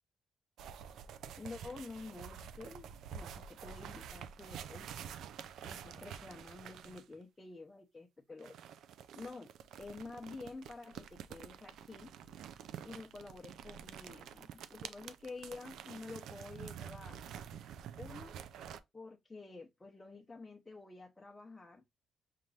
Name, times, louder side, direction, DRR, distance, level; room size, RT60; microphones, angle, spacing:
sound 1, 0.6-7.1 8.4-18.8, right 8 dB, 75° right, 0.4 m, -48 dB
voice 1, 1.4-4.9 5.6-8.6 9.1-9.5 9.8-12.1 12.8-17.2 18.0-18.4 18.9-21.8, left 3 dB, 20° left, 0.7 m, -49 dB
5.7 x 2.5 x 3.2 m
cardioid pair, 90°, 0 cm